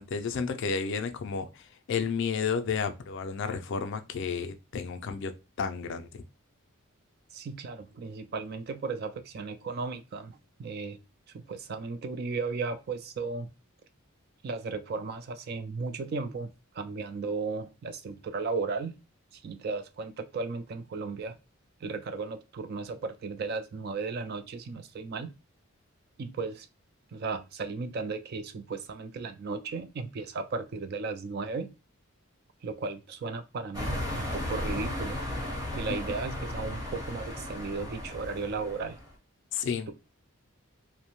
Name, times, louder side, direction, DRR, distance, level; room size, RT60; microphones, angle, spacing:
voice 1, 0.0-1.5 1.9-5.3 5.6-6.2 39.5-39.9, left 6 dB, 55° left, 0.3 m, -31 dB
voice 2, 7.3-11.0 11.3-13.5 14.4-18.9 19.4-21.4 21.8-25.3 26.2-26.7 27.1-31.7 32.6-35.2 35.7-39.0, right 4 dB, 45° right, 0.3 m, -35 dB
sound 1, 33.7-39.1, left 1 dB, 20° right, 0.9 m, -35 dB
2.5 x 2.1 x 2.9 m
head